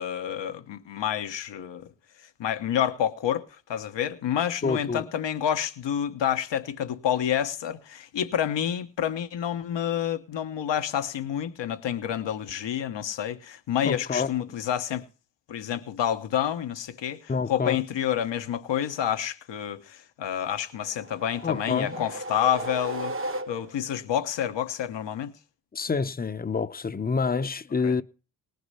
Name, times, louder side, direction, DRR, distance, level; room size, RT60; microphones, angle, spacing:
voice 1, 0.0-1.9 2.4-15.1 15.5-23.1 23.5-25.3 27.8-27.9, left 10 dB, 80° left, 1.1 m, -29 dB
voice 2, 4.6-5.1 13.8-14.3 17.3-17.8 21.4-22.0 25.7-28.0, left 5 dB, 20° left, 0.6 m, -27 dB
sound 1, 20.9-24.0, right 2 dB, 30° right, 0.8 m, -35 dB
19.0 x 6.6 x 5.5 m
cardioid pair, 50°, 43 cm